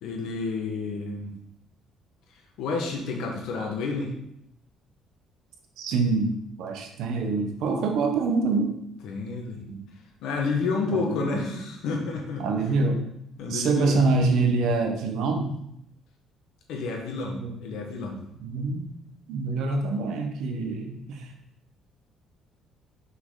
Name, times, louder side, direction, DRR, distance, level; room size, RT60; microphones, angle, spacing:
voice 1, 0.0-1.3 2.6-4.1 9.0-9.6 10.2-12.4 13.4-14.0 16.7-18.2, left 4 dB, 80° left, 1 dB, 1.6 m, -30 dB
voice 2, 5.8-6.3 6.6-8.7 9.7-9.8 10.9-11.5 12.4-13.0 13.5-15.5 17.3-17.5 18.4-18.9 19.3-21.3, right 3 dB, 70° right, 4 dB, 1.2 m, -25 dB
6.3 x 5.7 x 4.0 m, 0.76 s
cardioid pair, 155°, 0 cm